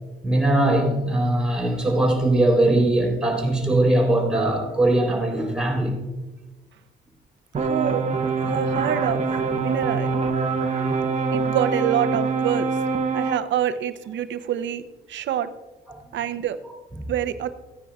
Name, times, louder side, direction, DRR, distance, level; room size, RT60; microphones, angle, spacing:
voice 1, 0.2-6.0 15.9-16.0 17.0-17.1, right 1 dB, 5° right, -1 dB, 3.8 m, -21 dB
sound 1, 7.5-13.4, right 4 dB, 35° right, 0.9 m, -24 dB
voice 2, 7.6-8.0 8.4-9.2 9.6-10.1 11.3-12.8 13.1-14.8 15.1-15.5 16.1-16.6 17.1-17.5, right 10 dB, 70° right, 10 dB, 0.7 m, -26 dB
15.5 x 9.8 x 2.4 m, 1.2 s
cardioid pair, 90°, 20 cm